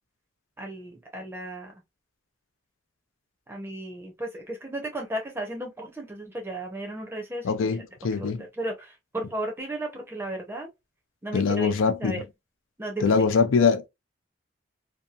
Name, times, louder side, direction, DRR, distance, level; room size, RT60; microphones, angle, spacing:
voice 1, 0.6-1.7 3.5-7.8 8.2-10.7 11.2-12.2 12.8-13.3, right 1 dB, 10° right, 0.5 m, -35 dB
voice 2, 7.4-8.5 11.3-12.2 13.0-13.9, left 5 dB, 85° left, 0.4 m, -23 dB
2.7 x 2.3 x 2.2 m
head